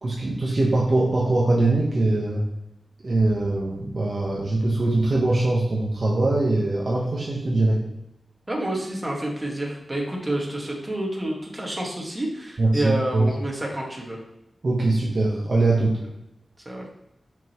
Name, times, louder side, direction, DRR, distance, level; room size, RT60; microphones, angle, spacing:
voice 1, 0.0-2.4 3.0-7.8 12.6-13.2 14.6-16.0, right 2 dB, 50° right, -3 dB, 1.0 m, -22 dB
voice 2, 8.5-14.2 16.6-16.9, right 1 dB, 20° right, -2 dB, 1.6 m, -29 dB
5.9 x 5.3 x 3.0 m, 0.88 s
wide cardioid pair, 85°, 0 cm